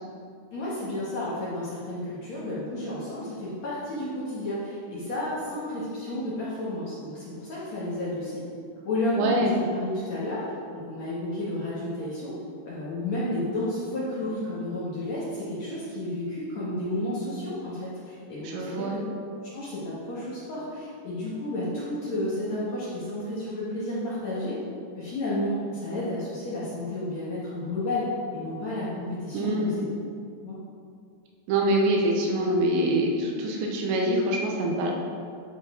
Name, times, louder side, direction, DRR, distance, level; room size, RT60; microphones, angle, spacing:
voice 1, 0.5-8.4 8.8-10.4 10.7-12.3 12.7-19.0 19.5-24.6 25.0-28.0 28.3-29.9 30.4-30.6, left 1 dB, 55° left, -8 dB, 2.3 m, -31 dB
voice 2, 9.2-9.5 18.4-19.0 29.3-29.8 31.5-34.9, right 1 dB, 85° right, 0 dB, 3.4 m, -25 dB
11.5 x 4.7 x 5.1 m, 2.3 s
omnidirectional pair, 5.0 m